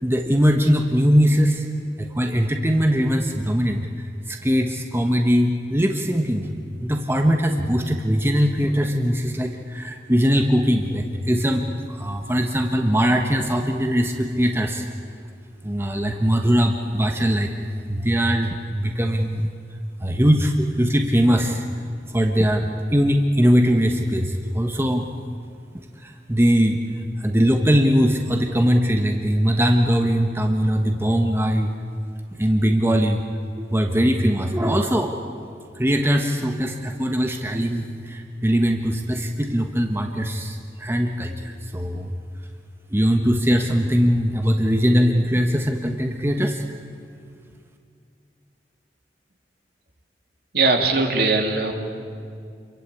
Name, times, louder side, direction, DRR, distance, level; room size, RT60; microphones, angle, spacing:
voice 1, 0.0-1.7 2.0-6.5 6.8-14.9 15.6-17.5 17.9-19.5 20.0-21.6 22.1-25.1 25.7-26.8 27.2-31.7 32.4-33.2 33.5-35.1 35.8-42.1 42.9-46.6, equal, 15° right, 4 dB, 1.3 m, -21 dB
voice 2, 50.5-51.7, right 3 dB, 65° right, 3 dB, 3.1 m, -20 dB
28.5 x 23.0 x 8.5 m, 2.3 s
head